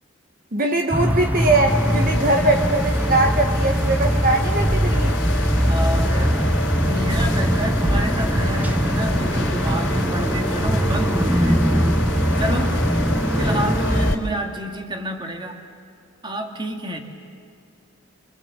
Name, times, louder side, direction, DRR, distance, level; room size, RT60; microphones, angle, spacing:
voice 1, 0.5-5.2, right 2 dB, 45° right, 3 dB, 1.4 m, -21 dB
sound 1, 0.9-14.1, equal, 10° right, 0.6 m, -21 dB
sound 2, 1.7-14.1, left 2 dB, 65° left, 4.1 m, -29 dB
voice 2, 5.5-6.5 6.8-11.7 12.4-12.8 13.4-15.6 16.2-17.0, equal, 25° right, 4 dB, 2.0 m, -29 dB
28.5 x 25.0 x 7.7 m, 2.5 s
head